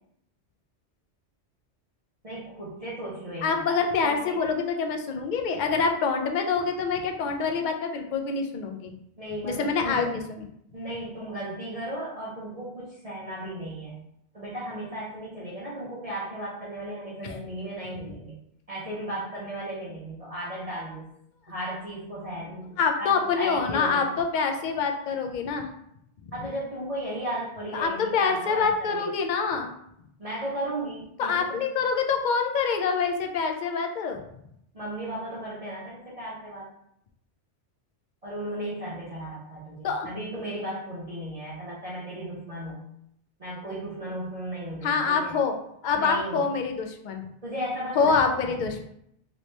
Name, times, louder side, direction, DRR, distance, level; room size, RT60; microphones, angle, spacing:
voice 1, 2.2-3.5 4.0-4.4 9.2-10.1 10.7-13.9 14.3-18.3 18.7-21.1 21.4-24.1 26.3-29.1 30.2-31.6 34.7-36.7 38.2-42.8 43.4-45.4 45.9-46.5 47.4-48.1 48.4-48.5, right 1 dB, 35° right, -8 dB, 0.8 m, -35 dB
voice 2, 3.4-8.9 9.4-10.5 17.2-17.4 22.8-25.7 27.7-29.7 31.2-34.2 39.8-40.1 44.8-45.5 45.8-47.2 48.0-48.8, left 5 dB, 60° left, 4 dB, 0.5 m, -26 dB
3.0 x 2.7 x 3.2 m, 0.74 s
omnidirectional pair, 1.2 m